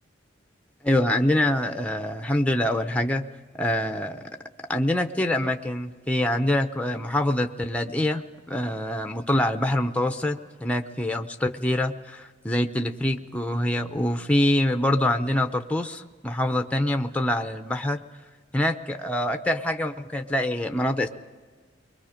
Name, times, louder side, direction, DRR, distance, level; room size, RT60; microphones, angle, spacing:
voice 1, 0.8-3.2 3.6-4.2 4.7-8.2 8.5-18.0 18.5-21.1, left 1 dB, 5° left, 6 dB, 0.7 m, -25 dB
30.0 x 22.0 x 5.1 m, 1.5 s
head